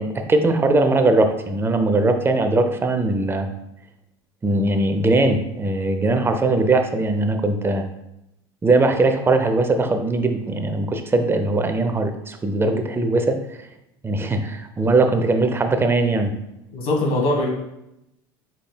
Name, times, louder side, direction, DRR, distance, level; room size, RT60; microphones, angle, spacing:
voice 1, 0.0-3.5 4.4-7.8 8.6-13.4 14.0-16.3, right 2 dB, 20° right, 6 dB, 0.6 m, -20 dB
voice 2, 16.7-17.5, left 1 dB, 55° left, -1 dB, 1.5 m, -21 dB
5.0 x 4.1 x 2.2 m, 0.85 s
hypercardioid pair, 85°, 13 cm